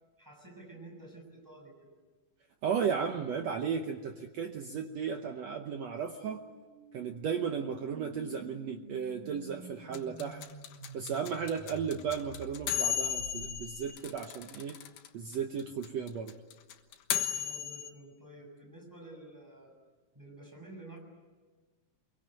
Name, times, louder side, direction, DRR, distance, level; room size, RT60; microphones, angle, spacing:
voice 1, 0.2-1.9 17.3-19.7 20.1-21.0, right 2 dB, 5° right, 1 dB, 6.5 m, -50 dB
voice 2, 2.6-6.4 6.9-10.4 10.9-14.8 15.1-16.3, right 7 dB, 70° right, 5 dB, 1.6 m, -35 dB
sound 1, 4.0-14.0, right 2 dB, 90° right, 7.9 m, -51 dB
sound 2, 9.9-15.1 15.3-15.4 15.6-17.9, left 9 dB, 80° left, 3.3 m, -34 dB
25.0 x 23.0 x 9.0 m, 1.3 s
omnidirectional pair, 4.3 m